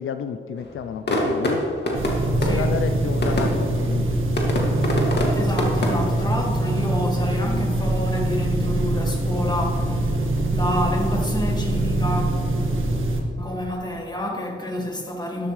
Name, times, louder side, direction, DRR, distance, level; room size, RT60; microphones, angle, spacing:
voice 1, 0.0-1.6 2.4-4.1, left 7 dB, 75° left, 0.5 m, -30 dB
sound 1, 0.6-6.3, left 1 dB, 55° left, 2.2 m, -27 dB
sound 2, 1.9-13.2, right 1 dB, 75° right, 1.6 m, -23 dB
voice 2, 2.4-2.8 5.3-10.1 10.5-12.4 13.4-15.5, left 1 dB, 20° left, 2.0 m, -28 dB
12.0 x 12.0 x 3.2 m
cardioid pair, 70°, 21 cm